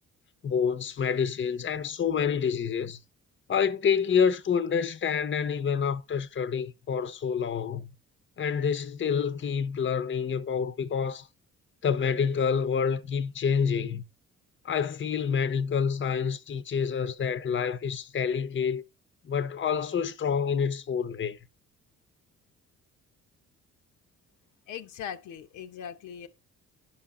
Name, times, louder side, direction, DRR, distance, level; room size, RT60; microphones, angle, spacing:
voice 1, 0.4-3.0 3.5-7.9 8.4-11.3 11.8-14.0 14.6-18.8 19.2-21.4, left 7 dB, 40° left, 0.9 m, -28 dB
voice 2, 24.7-26.3, left 8 dB, 85° left, 1.0 m, -40 dB
10.5 x 5.8 x 3.8 m
cardioid pair, 90°, 30 cm